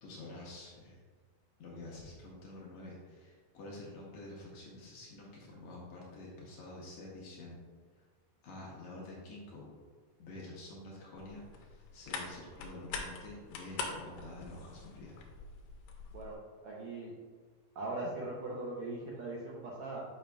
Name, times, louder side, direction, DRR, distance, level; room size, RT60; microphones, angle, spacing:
voice 1, 0.0-1.0 1.6-7.6 8.0-8.1 8.4-9.7 10.2-15.2, left 2 dB, 70° left, -4 dB, 2.0 m, -48 dB
sound 1, 11.2-16.4, left 4 dB, 85° left, 2.3 m, -44 dB
voice 2, 16.6-17.1 17.7-20.0, right 2 dB, 80° right, -4 dB, 1.6 m, -40 dB
6.6 x 6.2 x 2.3 m, 1.5 s
omnidirectional pair, 4.0 m